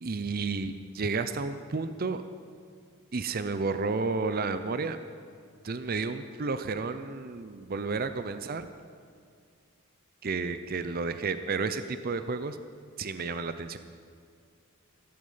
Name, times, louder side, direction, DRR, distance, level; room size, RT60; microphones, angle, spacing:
voice 1, 0.0-2.2 3.1-5.0 5.6-8.7 10.2-12.6 13.0-13.8, right 4 dB, 45° right, 11 dB, 0.5 m, -31 dB
15.0 x 13.0 x 5.7 m, 2.2 s
head